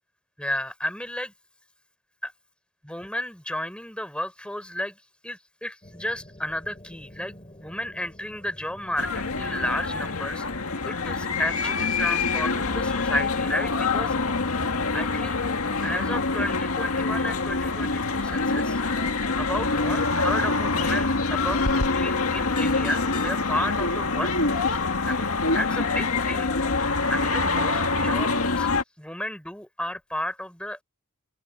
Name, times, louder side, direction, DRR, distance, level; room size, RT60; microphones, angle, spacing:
voice 1, 0.4-1.3 2.2-2.3 2.8-7.3 7.6-14.1 14.9-15.4 15.8-18.8 19.1-24.8 25.1-28.7 29.0-30.8, left 1 dB, 5° left, 4.1 m, -33 dB
sound 1, 5.8-15.9, equal, 25° left, 3.1 m, -48 dB
sound 2, 9.0-28.8, left 3 dB, 85° left, 1.9 m, -25 dB
open air
head